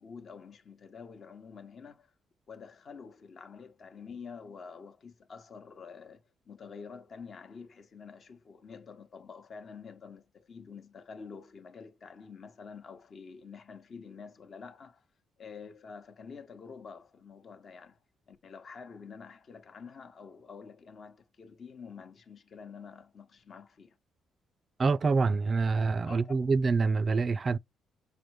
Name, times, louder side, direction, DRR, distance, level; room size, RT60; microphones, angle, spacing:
voice 1, 0.0-2.1 2.5-15.0 15.4-18.0 18.3-24.0 26.0-26.4, left 5 dB, 50° left, 0.9 m, -48 dB
voice 2, 24.8-27.6, right 4 dB, 40° right, 0.3 m, -26 dB
5.1 x 2.1 x 4.6 m
cardioid pair, 90°, 0 cm